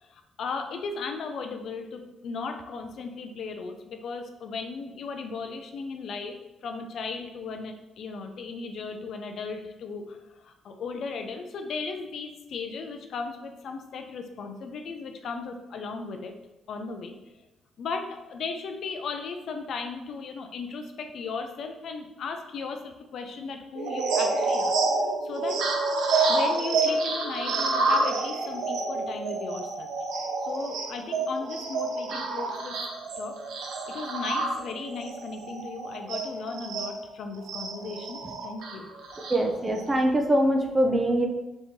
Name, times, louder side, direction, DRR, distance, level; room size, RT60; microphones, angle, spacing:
voice 1, 0.0-16.4 16.7-17.2 17.8-24.7 25.2-25.6 26.2-29.9 30.4-32.8 33.2-33.4 33.9-38.9, left 4 dB, 65° left, 6 dB, 0.4 m, -36 dB
sound 1, 23.8-36.9 37.5-39.9, right 3 dB, 85° right, 0.6 m, -28 dB
voice 2, 39.2-41.2, right 1 dB, 20° right, 3 dB, 0.6 m, -23 dB
4.0 x 2.9 x 3.6 m, 0.98 s
cardioid pair, 90°, 0 cm